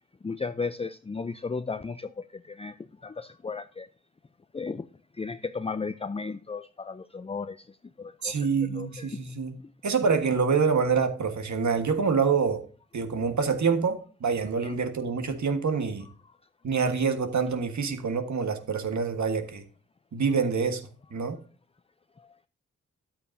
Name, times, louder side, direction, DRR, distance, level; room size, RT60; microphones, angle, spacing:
voice 1, 0.2-3.9 4.5-4.9 5.2-8.4 8.7-9.1 14.6-14.7, left 4 dB, 20° left, 0.5 m, -35 dB
voice 2, 8.2-9.6 9.8-12.6 12.9-16.1 16.6-19.6 20.1-20.8 21.1-21.4, right 5 dB, 65° right, 1.5 m, -26 dB
10.5 x 8.4 x 2.7 m
supercardioid pair, 40°, 31 cm